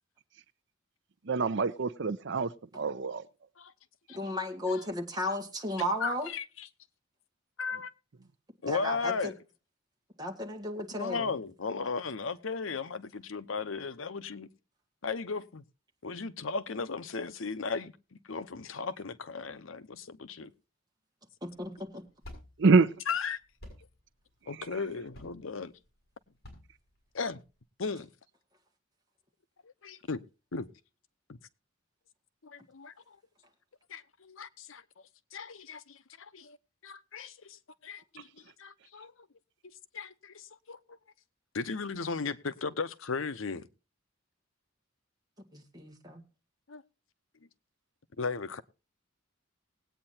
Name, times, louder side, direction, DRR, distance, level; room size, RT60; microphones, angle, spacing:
voice 1, 1.3-2.5 2.7-3.2 22.6-22.9, right 4 dB, 60° right, 0.6 m, -25 dB
voice 2, 4.1-6.3 8.7-9.3 10.2-11.3 21.4-22.0 45.5-46.2, left 1 dB, 20° right, 2.0 m, -34 dB
voice 3, 6.0-6.7 7.6-7.9 8.6-9.3 11.0-14.5 15.0-15.6 16.0-17.9 18.3-20.5 23.1-23.4 24.5-25.7 27.1-27.4 27.8-28.1 29.6-30.2 30.5-30.7 31.3-31.4 32.4-32.9 33.9-34.8 35.3-36.0 36.3-36.6 36.8-37.3 37.9-38.3 38.6-39.1 39.9-41.0 41.5-43.7 46.7-46.8 48.2-48.6, left 4 dB, 75° left, 0.8 m, -36 dB
sound 1, 21.5-27.6, left 1 dB, 55° left, 5.9 m, -52 dB
20.0 x 8.8 x 2.8 m
head